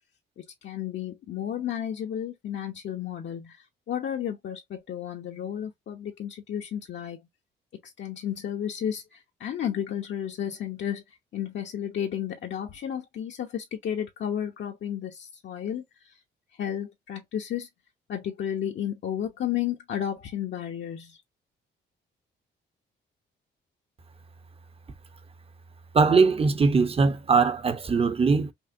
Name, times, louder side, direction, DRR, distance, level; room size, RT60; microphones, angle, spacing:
voice 1, 0.4-3.6 3.9-7.2 7.8-11.0 11.3-16.1 16.6-17.7 18.1-21.2, left 10 dB, 65° left, 1.0 m, -32 dB
voice 2, 25.9-28.5, right 4 dB, 30° right, 0.9 m, -21 dB
5.6 x 2.2 x 2.7 m
cardioid pair, 90°, 20 cm